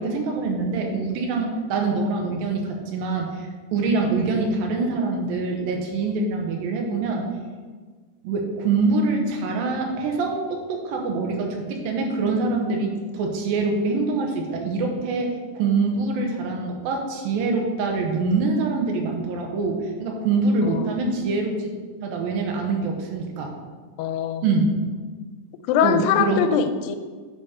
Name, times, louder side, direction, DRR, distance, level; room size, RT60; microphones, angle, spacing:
voice 1, 0.0-7.3 8.2-21.7 22.0-23.5 24.4-24.9 25.8-26.5, right 3 dB, 85° right, 1 dB, 2.8 m, -24 dB
voice 2, 24.0-24.4 25.7-27.0, left 8 dB, 90° left, 9 dB, 2.3 m, -22 dB
10.5 x 5.1 x 4.3 m, 1.5 s
omnidirectional pair, 4.0 m